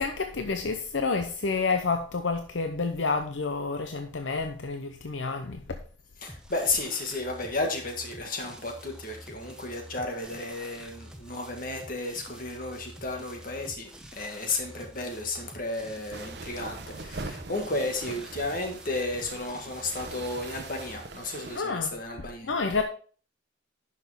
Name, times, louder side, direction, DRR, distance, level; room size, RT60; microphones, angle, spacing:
voice 1, 0.0-5.6 21.5-22.0 22.4-22.8, left 4 dB, 75° left, 0.7 m, -29 dB
voice 2, 6.2-22.5, left 2 dB, 45° left, 1.9 m, -33 dB
sound 1, 6.3-21.0, equal, 5° right, 0.9 m, -48 dB
sound 2, 16.1-21.6, right 3 dB, 55° right, 0.8 m, -42 dB
10.5 x 6.1 x 3.7 m
head